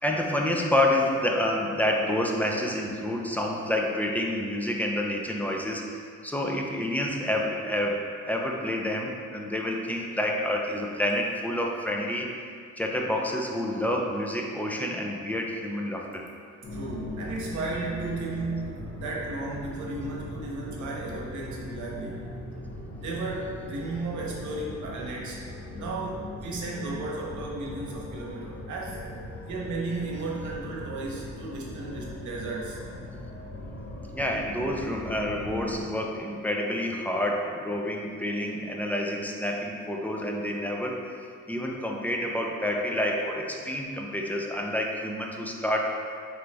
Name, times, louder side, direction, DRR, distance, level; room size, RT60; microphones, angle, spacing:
voice 1, 0.0-12.3 12.8-16.2 34.1-41.2 41.5-46.0, left 1 dB, 5° left, 0 dB, 0.4 m, -28 dB
sound 1, 16.6-35.8, left 2 dB, 35° left, 0.9 m, -40 dB
voice 2, 16.7-22.3 23.0-25.4 25.7-29.0 29.4-32.8, right 2 dB, 75° right, -3 dB, 0.9 m, -34 dB
3.8 x 3.3 x 3.3 m, 2.2 s
cardioid pair, 90°, 30 cm